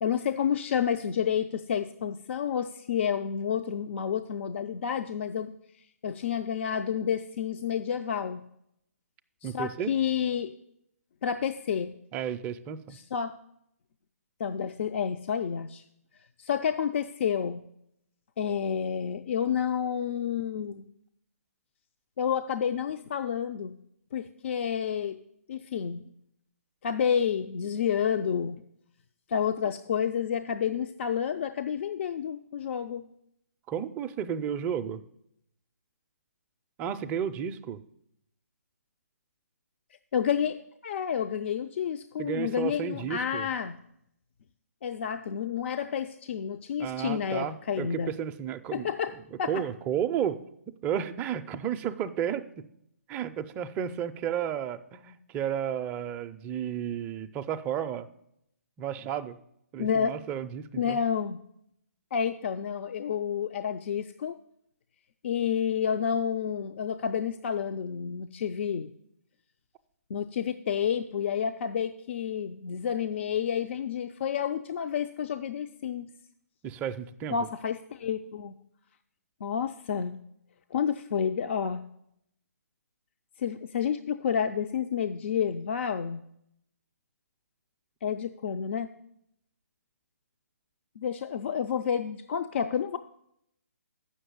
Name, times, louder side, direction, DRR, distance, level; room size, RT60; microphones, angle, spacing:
voice 1, 0.0-5.5 6.0-8.4 9.4-10.5 11.2-11.9 12.9-13.3 14.4-15.8 16.4-17.6 18.4-20.9 22.2-23.7 24.1-25.2 25.5-26.1 26.8-28.6 29.3-33.1 40.1-40.6 40.8-43.8 44.8-48.1 48.7-49.1 49.4-49.5 59.8-60.1 60.8-61.4 62.1-64.3 65.2-68.9 70.1-76.1 77.3-78.5 79.4-80.2 80.7-81.8 83.4-86.2 88.0-88.9 91.0-93.0, left 8 dB, 50° left, 9 dB, 0.4 m, -30 dB
voice 2, 9.4-9.9 12.1-13.0 33.7-35.0 36.8-37.8 42.2-43.5 46.8-48.9 49.3-50.4 50.8-52.6 53.1-58.1 58.8-59.4 59.7-61.0 76.6-77.5, right 9 dB, 15° right, 9 dB, 0.4 m, -32 dB
7.7 x 6.4 x 8.0 m, 0.76 s
figure-of-eight pair, 145°, 9 cm